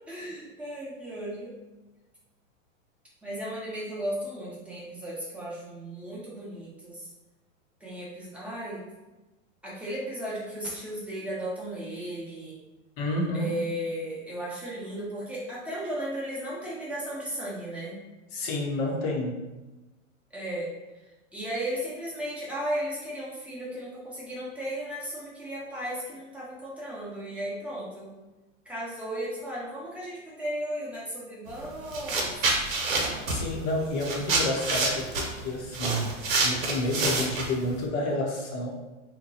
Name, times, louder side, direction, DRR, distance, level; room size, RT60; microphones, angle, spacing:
voice 1, 0.1-1.5 3.2-7.1 7.8-8.8 9.6-12.6 13.3-18.0 20.3-28.1 28.6-32.3, right 1 dB, 5° right, -7 dB, 0.8 m, -35 dB
voice 2, 13.0-13.5 18.3-19.4 33.3-38.7, left 1 dB, 35° left, 0 dB, 0.8 m, -30 dB
sound 1, 31.5-31.6 31.9-37.8, right 3 dB, 85° right, 1.0 m, -28 dB
2.9 x 2.2 x 3.9 m, 1.1 s
hypercardioid pair, 130°, 40 cm